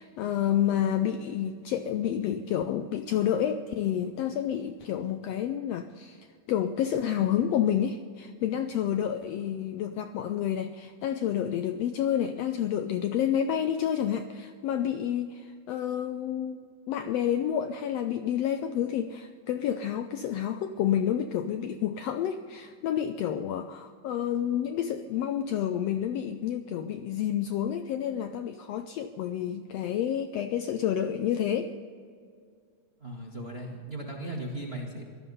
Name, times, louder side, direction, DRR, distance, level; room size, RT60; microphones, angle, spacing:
voice 1, 0.0-16.6 16.9-31.7, left 10 dB, 85° left, 9 dB, 1.4 m, -29 dB
voice 2, 33.0-35.0, right 1 dB, 40° right, -1 dB, 0.9 m, -37 dB
18.0 x 13.0 x 5.4 m, 2.2 s
omnidirectional pair, 3.5 m